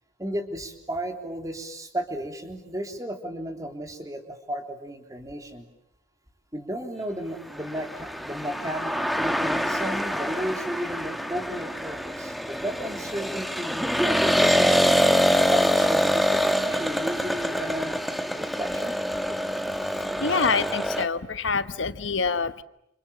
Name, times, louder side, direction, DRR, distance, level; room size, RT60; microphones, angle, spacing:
voice 1, 0.2-5.7 6.5-15.0 15.3-18.9, right 1 dB, 20° right, 5 dB, 3.6 m, -34 dB
sound 1, 7.6-21.1, equal, ahead, 1.5 m, -25 dB
voice 2, 20.2-22.6, left 4 dB, 85° left, 12 dB, 1.1 m, -26 dB
29.0 x 28.5 x 7.3 m, 0.81 s
head